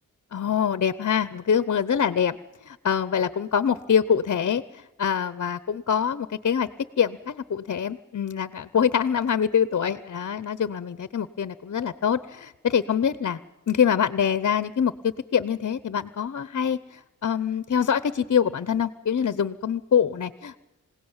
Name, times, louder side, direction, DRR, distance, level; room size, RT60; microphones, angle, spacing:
voice 1, 0.3-2.4 2.6-6.7 7.0-13.4 13.7-20.6, left 8 dB, 55° left, 15 dB, 0.9 m, -25 dB
27.0 x 17.5 x 8.9 m, 0.99 s
wide cardioid pair, 105°, 31 cm